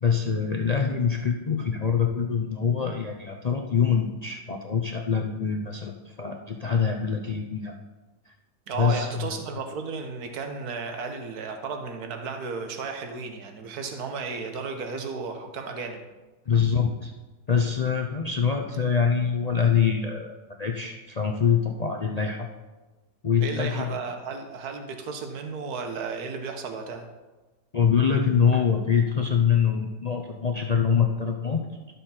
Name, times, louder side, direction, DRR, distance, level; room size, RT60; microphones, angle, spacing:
voice 1, 0.0-7.7 8.8-9.3 16.5-17.1 17.5-22.5 23.2-24.0 27.7-31.9, left 6 dB, 55° left, 2 dB, 0.4 m, -24 dB
voice 2, 8.7-16.0 23.4-27.1, right 4 dB, 65° right, 5 dB, 1.6 m, -34 dB
12.0 x 7.1 x 4.3 m, 1.2 s
omnidirectional pair, 1.8 m